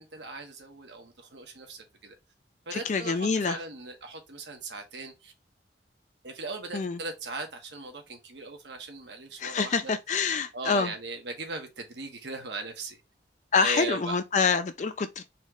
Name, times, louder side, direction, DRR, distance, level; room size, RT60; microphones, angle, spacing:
voice 1, 0.0-2.1 2.6-5.3 6.2-9.9 10.5-13.0 13.6-14.2, right 3 dB, 75° right, 1.2 m, -39 dB
voice 2, 2.7-3.6 6.7-7.0 9.4-10.9 13.5-15.3, left 5 dB, 40° left, 0.4 m, -26 dB
4.2 x 3.0 x 3.7 m
head